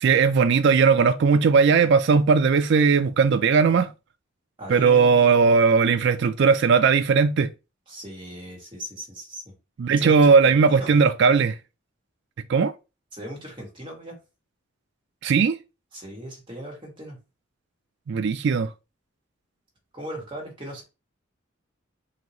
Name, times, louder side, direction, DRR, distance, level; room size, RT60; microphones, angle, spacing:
voice 1, 0.0-3.9 4.7-7.5 9.8-11.5 12.5-12.7 15.2-15.6 18.1-18.7, right 5 dB, 60° right, 0.4 m, -18 dB
voice 2, 4.6-5.6 7.9-9.5 10.0-10.9 13.1-14.2 15.9-17.2 19.9-20.8, equal, 25° right, 1.5 m, -38 dB
3.9 x 2.8 x 2.9 m
head